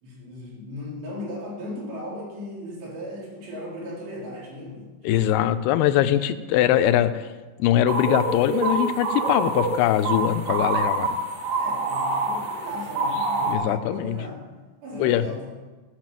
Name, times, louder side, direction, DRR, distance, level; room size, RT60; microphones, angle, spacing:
voice 1, 0.0-5.2 11.6-14.5 14.8-15.6, left 1 dB, 85° right, -6 dB, 6.1 m, -37 dB
voice 2, 5.0-7.3 7.6-11.2 13.5-14.2 15.0-15.2, left 11 dB, 80° left, 11 dB, 2.6 m, -22 dB
sound 1, 7.9-13.6, right 3 dB, 60° right, 3.2 m, -26 dB
18.5 x 6.4 x 7.5 m, 1.3 s
omnidirectional pair, 4.8 m